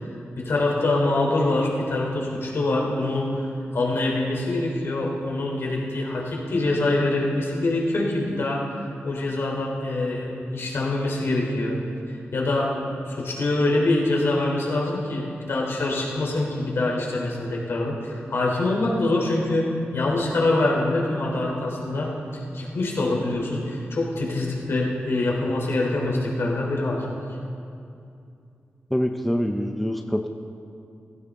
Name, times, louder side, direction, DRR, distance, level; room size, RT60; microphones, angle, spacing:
voice 1, 0.4-3.5 3.7-8.7 9.0-11.7 12.3-12.7 13.0-22.1 22.5-27.0, left 2 dB, 65° left, -2 dB, 3.2 m, -24 dB
voice 2, 28.9-30.3, equal, ahead, 4 dB, 0.5 m, -25 dB
17.0 x 16.0 x 3.6 m, 2.5 s
wide cardioid pair, 150°, 4 cm